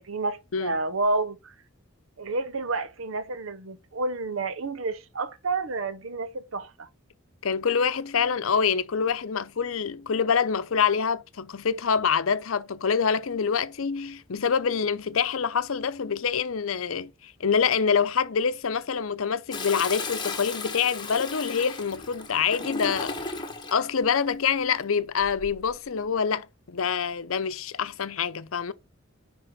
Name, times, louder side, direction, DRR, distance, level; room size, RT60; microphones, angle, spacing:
voice 1, 0.0-1.5 2.2-6.9, right 3 dB, 75° right, 0.8 m, -30 dB
voice 2, 7.4-23.2 23.7-28.7, left 6 dB, 85° left, 0.7 m, -26 dB
Toilet flush, 19.5-23.8 25.2-25.7, left 3 dB, 20° left, 1.4 m, -35 dB
10.0 x 3.7 x 3.8 m
head